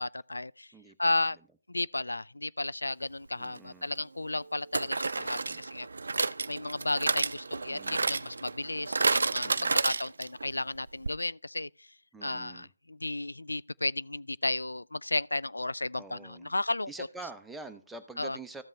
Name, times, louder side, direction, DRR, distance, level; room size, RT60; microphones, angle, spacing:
voice 1, 0.0-0.7 1.0-1.4 1.7-5.9 6.5-11.7 12.2-16.9 18.2-18.4, left 2 dB, 85° left, 0.3 m, -33 dB
voice 2, 0.7-1.3 3.3-3.9 5.1-5.7 7.7-8.2 9.4-9.8 12.1-12.7 16.0-16.6 16.9-18.6, right 3 dB, 5° right, 0.7 m, -47 dB
sound 1, 3.4-3.6 4.7-10.5 10.8-10.9 11.1-11.2, right 3 dB, 70° right, 0.5 m, -30 dB
14.5 x 5.3 x 3.2 m
figure-of-eight pair, 150°, 0 cm